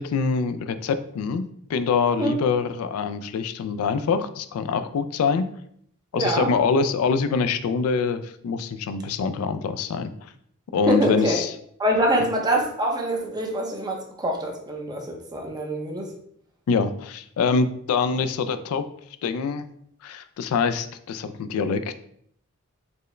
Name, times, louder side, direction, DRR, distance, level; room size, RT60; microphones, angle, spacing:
voice 1, 0.0-1.4 1.7-5.5 6.1-10.3 10.7-11.5 16.7-18.9 19.2-19.6 20.0-21.9, left 5 dB, 75° left, 12 dB, 0.3 m, -24 dB
voice 2, 6.1-6.5 10.9-11.4 11.8-16.1, right 1 dB, 20° right, 0 dB, 0.6 m, -24 dB
4.4 x 2.1 x 3.1 m, 0.67 s
head